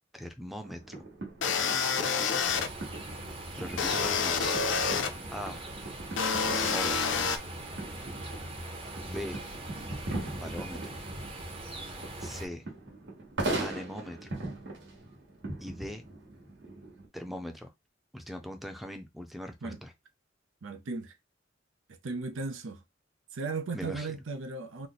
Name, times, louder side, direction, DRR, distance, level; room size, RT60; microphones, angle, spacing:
voice 1, 0.1-1.0 3.6-4.6 5.3-5.7 6.4-7.2 9.0-9.4 10.4-11.0 12.2-12.6 13.5-14.3 15.6-16.1 17.1-17.7 18.1-19.9 23.7-24.2, equal, ahead, 0.5 m, -40 dB
sound 1, 0.6-17.1, right 2 dB, 65° right, 1.3 m, -40 dB
sound 2, 1.4-2.7 3.8-5.1 6.2-7.4, left 5 dB, 70° left, 0.5 m, -28 dB
sound 3, 2.5-12.5, right 1 dB, 30° right, 0.8 m, -41 dB
voice 2, 20.6-21.2 22.0-22.8 23.3-24.9, right 3 dB, 85° right, 0.6 m, -36 dB
3.1 x 2.1 x 3.9 m
head